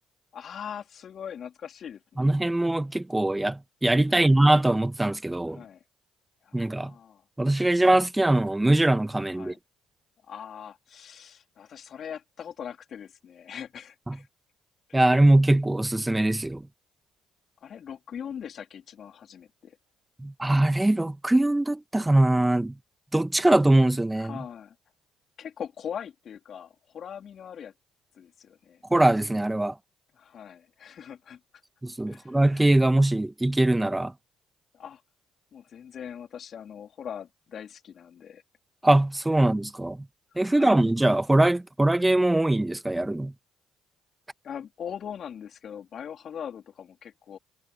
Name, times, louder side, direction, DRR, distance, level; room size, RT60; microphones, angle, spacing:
voice 1, 0.3-2.3 4.1-4.4 5.5-5.8 6.4-7.2 9.3-9.6 10.3-14.3 14.9-15.0 17.6-19.8 24.1-24.7 25.4-27.7 28.1-28.8 30.2-31.4 32.1-32.4 34.7-35.0 35.5-38.4 40.3-40.8 44.4-47.4, left 8 dB, 55° left, 3.4 m, -41 dB
voice 2, 2.2-5.6 6.5-6.9 7.4-9.5 14.1-14.2 14.9-16.7 20.2-22.7 23.1-24.4 28.9-29.8 31.8-34.1 38.8-40.0 40.4-43.3, right 1 dB, 10° right, 1.2 m, -22 dB
hypercardioid pair, 55°, 0 cm